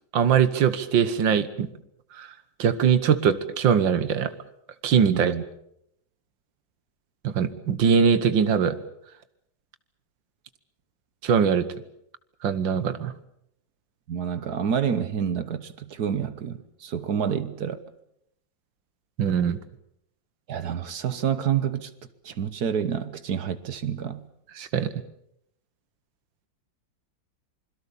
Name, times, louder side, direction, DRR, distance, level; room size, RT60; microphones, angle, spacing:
voice 1, 0.1-1.7 2.2-2.3 2.6-4.3 4.8-5.3 7.2-8.8 11.2-11.7 12.4-13.1 19.2-19.6 24.6-24.9, right 7 dB, 80° right, 2.0 m, -21 dB
voice 2, 5.1-5.4 14.1-17.8 20.5-21.9 22.2-24.3, right 8 dB, 60° right, 1.6 m, -28 dB
26.5 x 22.0 x 7.0 m
omnidirectional pair, 2.0 m